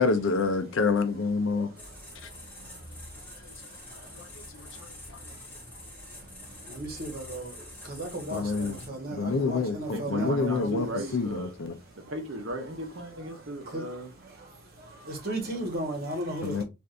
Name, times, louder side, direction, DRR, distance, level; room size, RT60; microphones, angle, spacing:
voice 1, 0.0-1.7 4.1-4.2 4.6-4.7 8.3-8.8 9.1-10.9 11.1-11.8 16.4-16.6, left 4 dB, 65° left, 0.6 m, -27 dB
sound 1, 1.8-8.9, left 1 dB, 10° left, 0.8 m, -46 dB
voice 2, 6.7-7.5 7.9-10.9 13.7-13.8 15.1-16.6, right 1 dB, 45° right, 1.2 m, -34 dB
voice 3, 9.9-11.5 12.1-14.1, right 1 dB, 65° right, 0.8 m, -36 dB
3.4 x 2.6 x 2.5 m
head